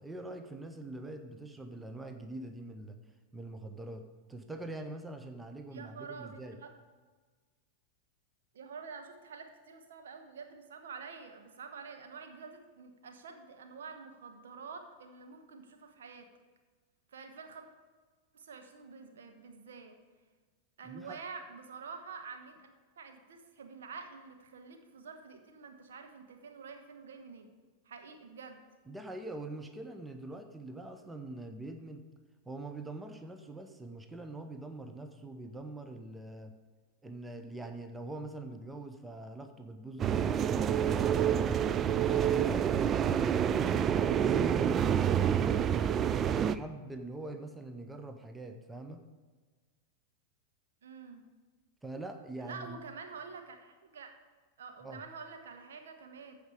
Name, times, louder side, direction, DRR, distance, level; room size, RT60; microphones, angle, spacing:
voice 1, 0.0-3.0 3.3-6.6 20.8-21.2 28.9-32.0 32.5-36.5 37.0-41.6 42.0-45.8 46.2-49.0 51.8-52.8 54.8-55.0, right 2 dB, 10° right, 6 dB, 0.7 m, -44 dB
voice 2, 5.7-6.7 8.5-16.3 17.1-17.7 18.3-19.9 20.8-27.5 27.8-28.6 50.8-51.2 52.4-54.2 54.6-56.5, right 5 dB, 60° right, 5 dB, 1.1 m, -48 dB
sound 1, 40.0-46.6, right 9 dB, 25° right, 0.3 m, -28 dB
14.5 x 5.0 x 4.9 m, 1.4 s
figure-of-eight pair, 90°, 0 cm